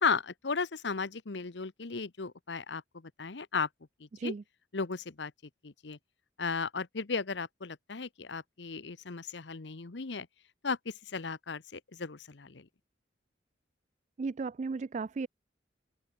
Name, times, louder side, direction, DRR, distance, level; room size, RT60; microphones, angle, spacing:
voice 1, 0.0-3.7 4.0-4.3 4.7-5.3 5.6-6.0 6.4-10.3 10.6-12.7, left 5 dB, 75° left, 1.0 m, -35 dB
voice 2, 4.1-4.4 14.2-15.3, right 4 dB, 40° right, 0.3 m, -35 dB
open air
head